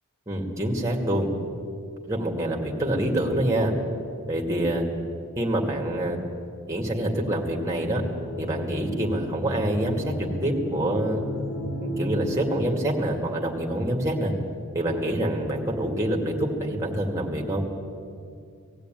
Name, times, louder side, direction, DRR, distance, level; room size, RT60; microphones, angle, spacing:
voice 1, 0.3-1.3 2.0-3.7 4.3-4.9 5.4-6.2 6.7-8.0 8.4-11.2 11.8-14.3 14.7-17.7, right 1 dB, 15° right, 0 dB, 2.3 m, -26 dB
sound 1, 7.4-12.6, equal, 50° left, 3.5 m, -34 dB
19.0 x 15.0 x 9.1 m, 2.4 s
head